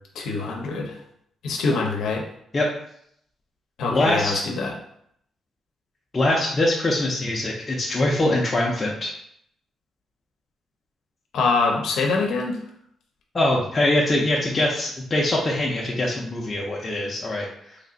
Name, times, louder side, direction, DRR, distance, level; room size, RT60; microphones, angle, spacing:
voice 1, 0.1-0.9 1.4-2.2 3.8-4.7 11.3-12.6, left 4 dB, 75° left, 0 dB, 0.6 m, -24 dB
voice 2, 3.9-4.4 6.1-9.1 13.3-17.8, left 1 dB, 20° left, -3 dB, 0.4 m, -23 dB
3.2 x 2.4 x 3.8 m, 0.70 s
cardioid pair, 170°, 0 cm